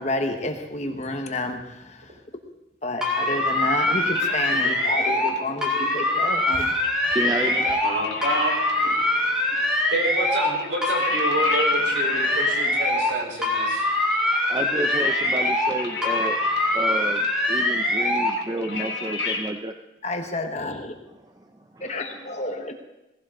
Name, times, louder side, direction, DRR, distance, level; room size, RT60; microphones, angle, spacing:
voice 1, 0.0-2.1 2.8-6.7 20.0-20.9 21.8-22.7, left 2 dB, 35° left, 5 dB, 1.3 m, -30 dB
Slow Whoop, 3.0-5.3 5.6-7.9 8.2-10.5 10.8-13.1 13.4-15.7 16.0-18.3, left 1 dB, 5° right, 2.4 m, -23 dB
voice 2, 3.5-4.1 4.5-4.6 5.8-6.1 7.1-7.8 14.5-19.7 21.2-22.1, right 1 dB, 20° right, 5 dB, 0.6 m, -31 dB
sound 1, 4.1-19.5, left 3 dB, 60° left, 2.3 m, -36 dB
voice 3, 7.8-8.5 8.8-8.9 9.9-13.9, right 1 dB, 70° right, 0 dB, 4.7 m, -28 dB
18.0 x 16.0 x 3.9 m, 0.94 s
head